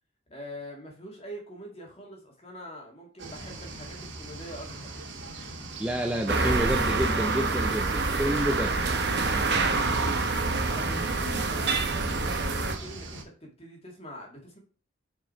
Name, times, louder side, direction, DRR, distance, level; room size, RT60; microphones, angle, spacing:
voice 1, 0.3-4.9 9.9-14.6, equal, 30° left, 0 dB, 2.1 m, -44 dB
sound 1, 3.2-13.2, right 2 dB, 70° right, 1.5 m, -41 dB
voice 2, 5.8-8.7, right 1 dB, 5° right, 2 dB, 0.5 m, -29 dB
sound 2, 6.3-12.7, right 3 dB, 55° right, 0.9 m, -26 dB
6.1 x 4.6 x 4.4 m, 0.36 s
head